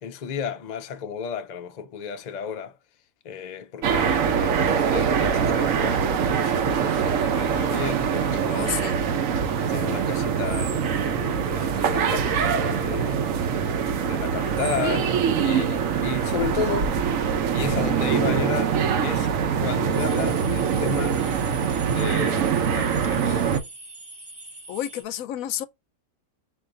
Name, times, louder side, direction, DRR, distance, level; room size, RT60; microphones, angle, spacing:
voice 1, 0.0-2.8 3.2-8.7 9.7-13.2 14.0-17.2 17.5-21.2 21.9-23.4, left 7 dB, 50° left, 0.5 m, -33 dB
sound 1, 3.8-23.6, right 7 dB, 70° right, 1.1 m, -23 dB
voice 2, 8.5-9.0 24.7-25.6, left 11 dB, 75° left, 1.0 m, -30 dB
sound 2, 19.9-25.0, right 2 dB, 15° right, 0.8 m, -42 dB
4.6 x 2.5 x 3.8 m
omnidirectional pair, 1.5 m